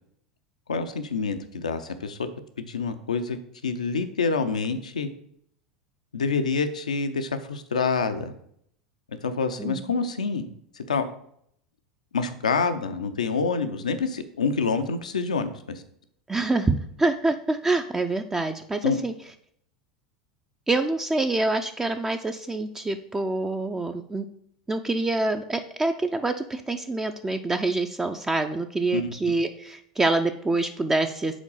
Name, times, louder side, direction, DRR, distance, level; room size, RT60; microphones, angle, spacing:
voice 1, 0.7-2.3 2.6-3.4 3.6-5.1 6.1-8.3 9.2-11.0 12.1-15.8 18.8-19.0 28.9-29.1, left 4 dB, 85° left, 9 dB, 0.6 m, -27 dB
voice 2, 16.3-19.1 20.7-24.3 24.7-31.4, right 2 dB, 15° right, 6 dB, 0.4 m, -26 dB
5.0 x 3.9 x 5.4 m, 0.69 s
hypercardioid pair, 90°, 4 cm